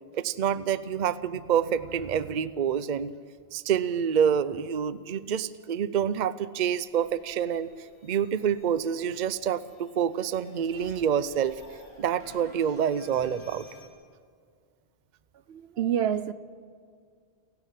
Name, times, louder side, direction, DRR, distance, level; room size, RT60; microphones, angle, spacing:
voice 1, 0.1-3.1 3.5-7.7 8.0-11.5 12.0-13.7, right 8 dB, 50° right, 0.7 m, -27 dB
sound 1, 6.9-13.9, left 2 dB, 75° left, 3.0 m, -53 dB
voice 2, 15.5-16.3, right 9 dB, 70° right, 0.9 m, -27 dB
29.0 x 12.0 x 7.6 m
omnidirectional pair, 1.1 m